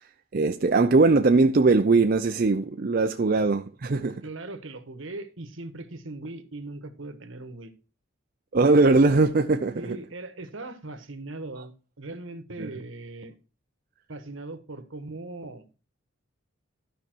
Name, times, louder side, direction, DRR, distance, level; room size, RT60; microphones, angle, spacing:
voice 1, 0.3-4.1 8.5-9.8 12.6-12.7, right 3 dB, 45° right, 0.5 m, -20 dB
voice 2, 4.0-7.7 9.7-13.3 14.1-15.6, right 2 dB, 70° right, 1.3 m, -39 dB
12.5 x 5.4 x 4.5 m
head